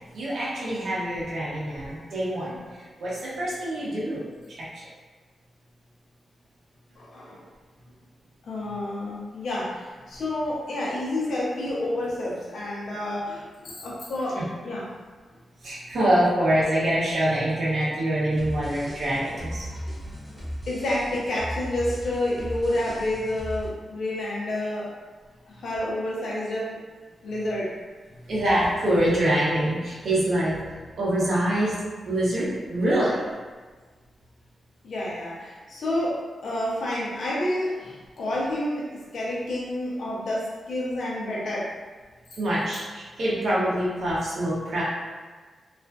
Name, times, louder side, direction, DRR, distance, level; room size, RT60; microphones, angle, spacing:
voice 1, 0.1-4.2 4.5-4.7 14.4-14.5 15.6-19.8 28.2-31.7 32.1-33.2 42.4-44.8, right 1 dB, 55° right, -8 dB, 0.7 m, -25 dB
voice 2, 7.0-7.4 8.4-14.9 20.3-24.9 25.5-26.8 27.2-27.8 34.8-41.7, left 1 dB, 65° left, -6 dB, 0.7 m, -29 dB
sound 1, 18.3-23.7, equal, 5° left, 0.5 m, -37 dB
2.4 x 2.3 x 2.3 m, 1.4 s
wide cardioid pair, 165°, 0 cm